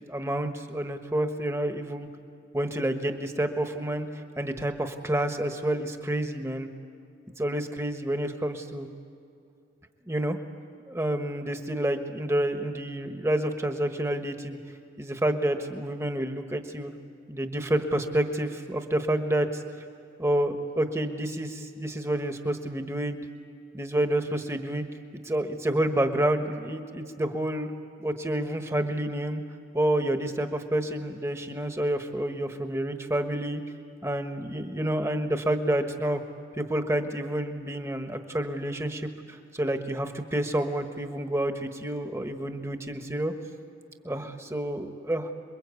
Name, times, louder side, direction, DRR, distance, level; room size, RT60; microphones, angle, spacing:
voice 1, 0.1-2.1 2.5-6.7 7.4-8.9 10.1-10.4 10.9-14.6 15.0-16.9 17.3-19.6 20.2-23.2 23.7-24.8 25.1-27.7 28.0-29.4 29.7-33.6 34.0-36.2 36.6-43.3 44.0-45.3, right 1 dB, 15° right, 6 dB, 1.3 m, -29 dB
27.5 x 22.5 x 8.3 m, 2.5 s
head